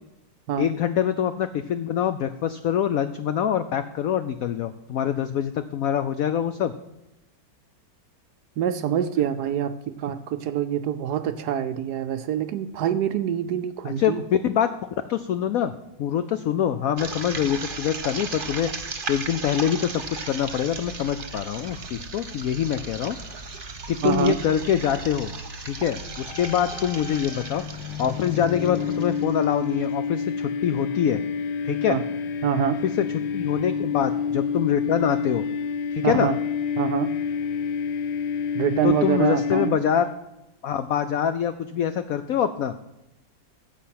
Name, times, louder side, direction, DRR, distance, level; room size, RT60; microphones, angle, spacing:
voice 1, 0.6-6.7 13.8-14.1 14.4-14.7 15.1-15.7 16.0-18.7 19.1-23.2 23.9-25.3 25.6-27.6 28.0-31.2 31.6-32.0 32.8-33.1 33.3-35.4 35.9-36.3 38.8-40.1 40.6-42.7, left 9 dB, 90° left, 11 dB, 0.7 m, -25 dB
voice 2, 8.6-14.2 24.0-24.4 31.9-32.0 32.4-32.8 36.0-36.4 36.8-37.1 38.5-39.8, right 9 dB, 75° right, 10 dB, 1.0 m, -25 dB
sound 1, 17.0-29.8, right 4 dB, 35° right, 1.0 m, -36 dB
sound 2, 26.1-40.1, left 6 dB, 70° left, 1.0 m, -29 dB
10.0 x 7.6 x 5.8 m, 0.93 s
omnidirectional pair, 2.1 m